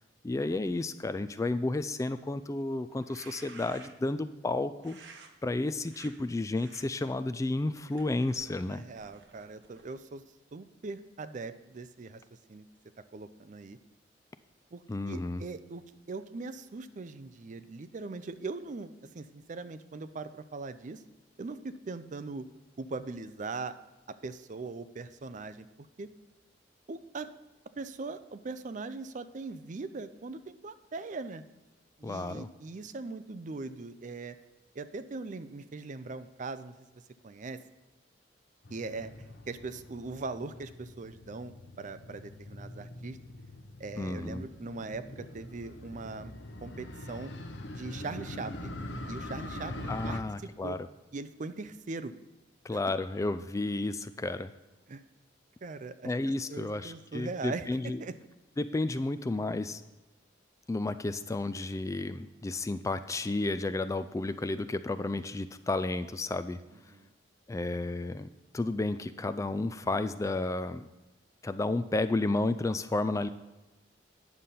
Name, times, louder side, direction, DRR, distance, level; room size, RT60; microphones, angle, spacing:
voice 1, 0.2-5.0 5.4-8.8 14.9-15.4 32.0-32.5 44.0-44.5 49.9-50.8 52.6-54.5 56.0-58.0 58.6-59.8 60.7-66.6 67.5-68.3 68.5-70.9 71.4-73.3, left 2 dB, 15° left, 12 dB, 0.3 m, -32 dB
sound 1, 2.9-4.1 4.8-5.3 5.8-6.1 6.5-6.8 7.5-10.1, right 4 dB, 75° right, 1.1 m, -53 dB
voice 2, 8.7-10.2 10.5-12.2 12.5-12.6 13.1-13.8 14.7-15.8 16.1-21.0 21.4-22.5 22.8-23.8 24.2-25.7 26.0-26.1 26.9-27.3 27.8-31.4 32.0-34.4 34.8-37.6 38.7-39.1 39.5-43.2 43.8-46.3 46.6-47.3 47.7-48.7 49.1-50.8 51.1-52.1 52.7-52.8 54.9-55.0 55.6-56.1 56.5-58.1 66.9-67.1, right 3 dB, 45° right, 12 dB, 0.5 m, -40 dB
Motorcycle, 38.6-50.2, left 1 dB, 80° left, 0.9 m, -43 dB
9.4 x 6.8 x 5.6 m, 1.1 s
head